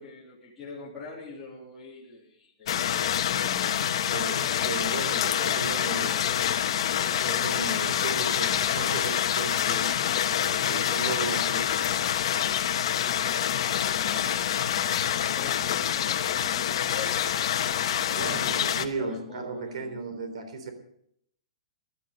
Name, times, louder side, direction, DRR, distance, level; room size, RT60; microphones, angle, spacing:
voice 1, 0.0-4.1 13.2-14.4 15.1-20.0, left 4 dB, 10° left, -10 dB, 3.2 m, -45 dB
sound 1, 2.7-18.8, left 10 dB, 55° left, 1.1 m, -26 dB
voice 2, 4.1-6.2 7.2-11.7 18.1-20.7, right 4 dB, 65° right, 8 dB, 3.7 m, -36 dB
15.0 x 12.0 x 5.3 m, 0.69 s
hypercardioid pair, 170°, 3 cm